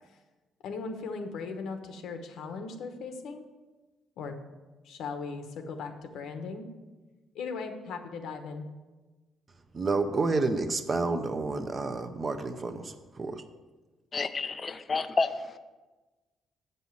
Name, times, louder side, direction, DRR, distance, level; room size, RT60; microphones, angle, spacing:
voice 1, 0.6-3.4 4.2-4.3 4.8-6.7 7.3-8.7, left 4 dB, 75° left, 1.1 m, -38 dB
voice 2, 9.7-13.4, right 3 dB, 25° right, 0.6 m, -30 dB
voice 3, 14.1-15.6, left 4 dB, 25° left, 0.4 m, -30 dB
8.3 x 5.5 x 7.8 m
cardioid pair, 170°, 0 cm